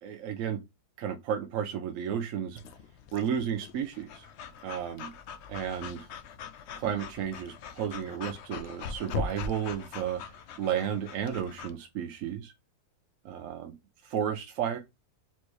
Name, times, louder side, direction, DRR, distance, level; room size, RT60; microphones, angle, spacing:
voice 1, 0.0-0.6 1.0-2.6 3.1-4.3 4.6-5.1 5.5-6.1 6.7-12.5 13.2-13.7 14.0-14.8, right 8 dB, 65° right, 0.9 m, -33 dB
Breathing / Dog, 2.6-11.7, left 5 dB, 75° left, 0.6 m, -41 dB
4.4 x 3.2 x 3.0 m
omnidirectional pair, 1.7 m